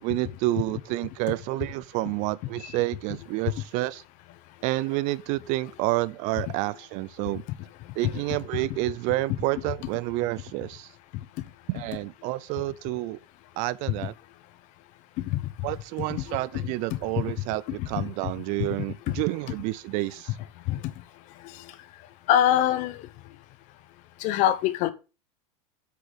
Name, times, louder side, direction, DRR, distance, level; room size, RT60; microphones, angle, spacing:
voice 1, 0.0-4.0 4.6-7.4 8.0-10.9 11.7-13.2 13.6-14.1 15.6-20.3, right 18 dB, 45° right, 0.4 m, -29 dB
voice 2, 16.2-17.2 17.7-18.0 18.6-18.8 19.1-19.2 20.7-20.8 21.4-21.7 22.3-23.1 24.2-24.9, left 12 dB, 45° left, 0.8 m, -25 dB
8.2 x 6.2 x 3.4 m
supercardioid pair, 150°, 17 cm